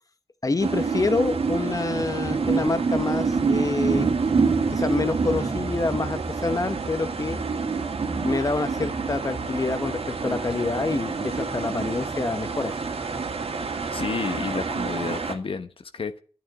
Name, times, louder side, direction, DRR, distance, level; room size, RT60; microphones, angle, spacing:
voice 1, 0.4-4.1 4.7-7.4 8.2-12.7, left 3 dB, 35° left, 11 dB, 1.1 m, -27 dB
sound 1, 0.6-15.3, right 4 dB, 70° right, 2.2 m, -27 dB
voice 2, 13.9-16.2, left 5 dB, 60° left, 9 dB, 1.1 m, -31 dB
12.5 x 9.2 x 9.4 m, 0.41 s
wide cardioid pair, 125°, 10 cm